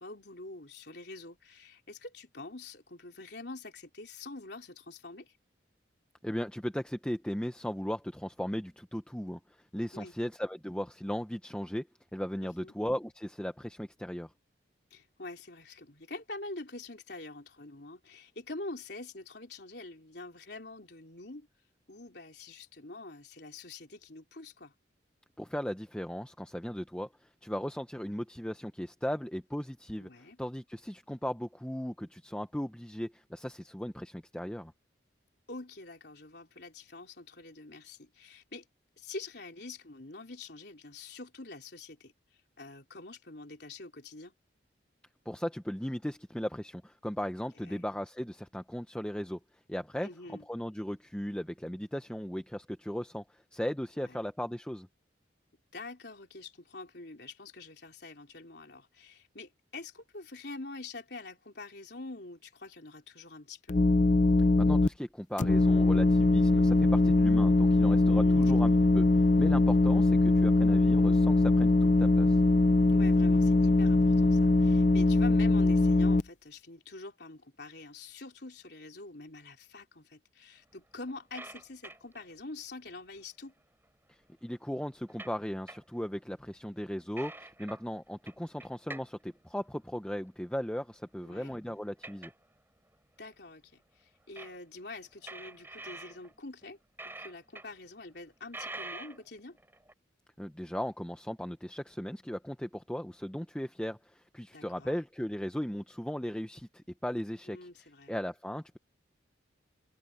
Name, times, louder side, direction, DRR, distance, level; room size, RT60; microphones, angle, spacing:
voice 1, 0.0-5.3 9.9-10.1 12.4-12.7 14.9-21.5 21.9-24.7 30.0-30.4 35.5-38.7 39.0-42.1 42.6-44.3 47.6-47.8 50.0-50.4 54.0-54.2 55.7-63.8 68.1-68.5 68.8-68.9 72.9-83.5 91.2-91.5 93.2-96.8 97.0-99.6 104.5-104.9 107.5-108.1, left 2 dB, 60° left, 3.8 m, -46 dB
voice 2, 6.2-14.3 25.4-30.1 30.4-34.7 45.3-49.4 49.7-54.9 64.4-72.4 84.1-92.3 100.4-108.8, equal, 5° left, 0.7 m, -37 dB
sound 1, 63.7-64.9 65.4-76.2, left 2 dB, 40° left, 0.5 m, -22 dB
sound 2, 80.7-82.3 83.8-83.9 84.1-84.2 85.0-85.4 85.7-86.1 86.5-86.6 87.2-87.8 88.2-89.1 89.4-89.8 91.2-91.7 92.0-92.4 92.9-93.0 93.3-93.4 94.4-94.6 95.1-96.6 97.0-97.8 98.1-98.2 98.5-99.9, right 2 dB, 10° right, 5.4 m, -45 dB
head